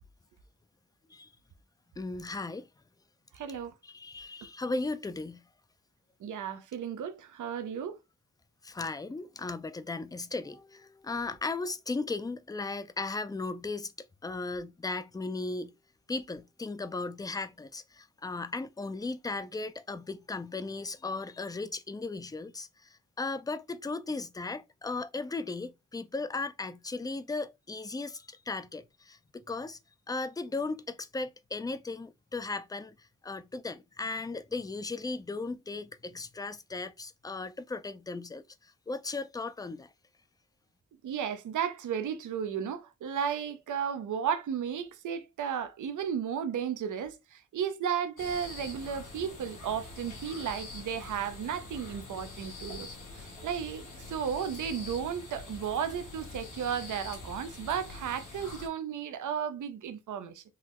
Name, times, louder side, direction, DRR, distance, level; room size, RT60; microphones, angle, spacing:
voice 1, 2.0-2.7 3.8-5.4 8.6-13.9 14.2-15.7 16.1-29.2 29.5-29.8 30.1-39.9, left 3 dB, 15° left, 0.3 m, -36 dB
voice 2, 3.3-3.7 6.2-8.0 41.0-60.4, right 8 dB, 80° right, 0.5 m, -34 dB
sound 1, 48.2-58.7, left 2 dB, 80° left, 1.2 m, -45 dB
3.6 x 2.1 x 2.9 m
cardioid pair, 55°, 30 cm